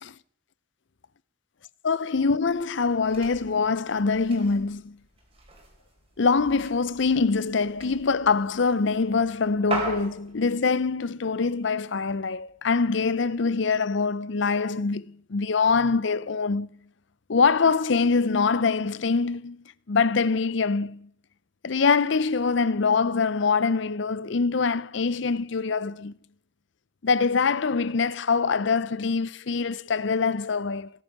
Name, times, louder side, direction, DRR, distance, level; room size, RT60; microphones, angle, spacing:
voice 1, 1.8-5.0 6.2-16.7 17.3-19.6 19.9-21.1 21.6-26.1 27.0-30.9, left 4 dB, 65° left, 0.6 m, -24 dB
sound 1, 2.4-10.5, right 3 dB, 25° right, 4.5 m, -40 dB
19.5 x 10.5 x 5.9 m
head